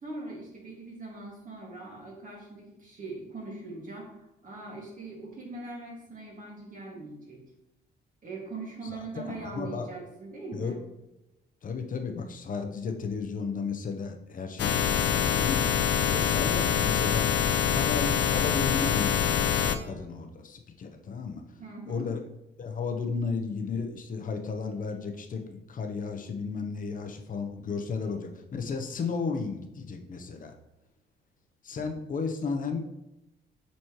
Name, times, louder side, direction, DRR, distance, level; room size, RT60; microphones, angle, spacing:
voice 1, 0.0-7.4 8.2-10.8 21.6-22.1, right 3 dB, 45° right, -3 dB, 2.2 m, -41 dB
voice 2, 9.2-9.9 10.5-10.7 11.6-15.6 16.1-17.3 17.7-21.4 21.9-22.2 22.6-30.5 31.6-32.8, left 5 dB, 45° left, 5 dB, 0.9 m, -34 dB
sound 1, 14.6-19.8, left 8 dB, 70° left, 0.6 m, -25 dB
7.5 x 4.3 x 3.2 m, 0.92 s
cardioid pair, 95°, 19 cm